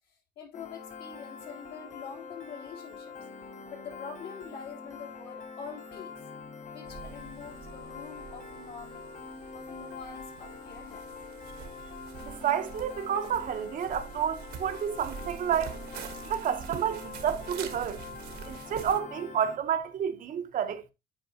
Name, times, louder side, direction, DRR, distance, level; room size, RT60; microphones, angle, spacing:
voice 1, 0.0-3.1 3.7-6.2 6.7-9.0 9.5-11.0, left 6 dB, 70° left, 3.2 m, -45 dB
Piano, 0.5-19.6, left 4 dB, 45° left, 1.1 m, -44 dB
sound 1, 6.9-19.0, right 7 dB, 75° right, 1.4 m, -45 dB
voice 2, 12.2-15.8 16.2-18.0 18.5-20.9, right 8 dB, 55° right, 0.9 m, -30 dB
9.0 x 4.8 x 2.8 m
cardioid pair, 110°, 17 cm